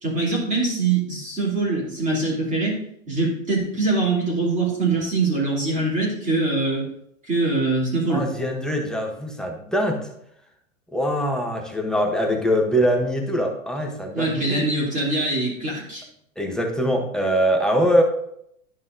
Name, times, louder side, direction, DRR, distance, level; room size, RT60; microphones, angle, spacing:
voice 1, 0.0-2.8 3.1-6.9 7.3-8.3 14.1-16.0, right 3 dB, 20° right, -4 dB, 2.6 m, -23 dB
voice 2, 8.1-10.1 10.9-14.7 16.4-18.0, equal, ahead, 1 dB, 0.8 m, -23 dB
11.5 x 5.4 x 2.6 m, 0.74 s
hypercardioid pair, 125°, 42 cm